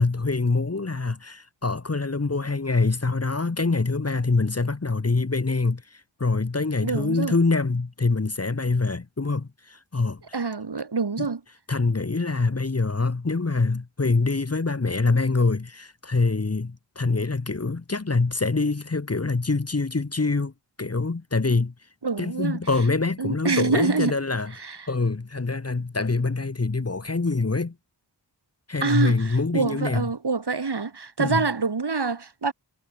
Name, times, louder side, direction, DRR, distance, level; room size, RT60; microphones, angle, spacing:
voice 1, 0.0-10.2 11.2-11.3 11.7-20.5 20.8-21.7 22.2-24.5 24.9-27.7 28.7-30.1 31.2-31.5, left 3 dB, 35° left, 1.9 m, -25 dB
voice 2, 6.8-7.4 10.3-11.4 22.0-22.6 23.2-24.1 24.5-24.9 28.8-32.5, right 4 dB, 65° right, 5.2 m, -26 dB
wide cardioid pair, 90°, 43 cm